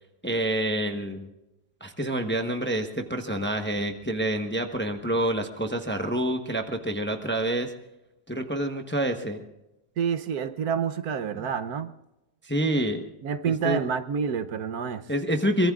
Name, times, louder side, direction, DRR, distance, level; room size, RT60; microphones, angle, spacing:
voice 1, 0.2-1.3 1.8-7.7 8.3-9.4 11.4-11.5 12.4-13.0 13.6-13.8 15.1-15.7, right 1 dB, 10° left, 4 dB, 0.9 m, -27 dB
voice 2, 10.0-11.9 12.7-12.9 13.2-15.1, right 7 dB, 70° right, 11 dB, 1.2 m, -28 dB
24.0 x 22.0 x 2.4 m, 0.94 s
omnidirectional pair, 1.8 m